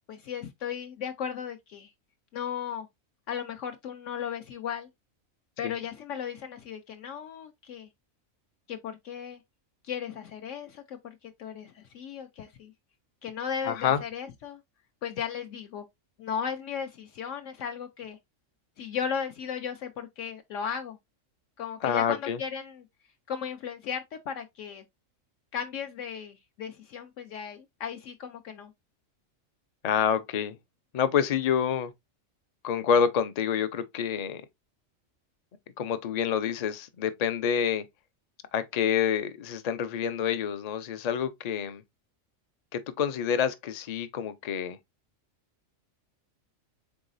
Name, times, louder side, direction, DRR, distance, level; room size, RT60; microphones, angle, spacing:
voice 1, 0.0-1.9 2.3-2.9 3.3-4.9 5.6-7.9 8.7-9.4 9.8-12.7 13.2-14.6 15.0-15.8 16.2-18.2 18.8-21.0 21.6-22.9 23.3-24.8 25.5-28.7, left 7 dB, 70° left, 0.9 m, -36 dB
voice 2, 13.6-14.0 21.8-22.4 29.8-30.6 30.9-31.9 32.6-34.4 35.8-37.8 38.5-41.8 42.7-44.8, left 8 dB, 50° left, 0.4 m, -27 dB
4.7 x 3.9 x 2.5 m
omnidirectional pair, 1.4 m